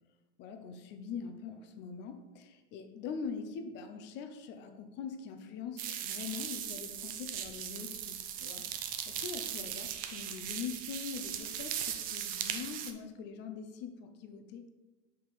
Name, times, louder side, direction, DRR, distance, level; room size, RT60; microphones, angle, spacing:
voice 1, 0.4-14.6, left 6 dB, 30° left, 7 dB, 0.7 m, -43 dB
sound 1, 5.8-12.9, right 9 dB, 25° right, 0.4 m, -38 dB
5.8 x 5.0 x 4.1 m, 1.1 s
hypercardioid pair, 135°, 37 cm